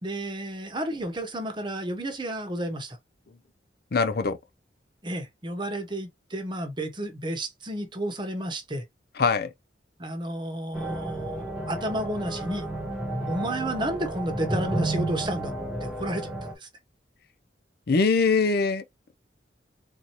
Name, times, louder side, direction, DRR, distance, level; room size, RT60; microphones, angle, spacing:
voice 1, 0.0-3.0 5.0-8.8 10.0-12.7 13.3-15.5 15.8-16.3 16.6-16.7, right 1 dB, 25° right, 1.0 m, -31 dB
voice 2, 3.9-4.4 9.2-9.5 17.9-18.8, left 4 dB, 60° left, 0.5 m, -22 dB
sound 1, 10.7-16.5, right 2 dB, 5° right, 1.1 m, -32 dB
4.1 x 2.8 x 3.0 m
head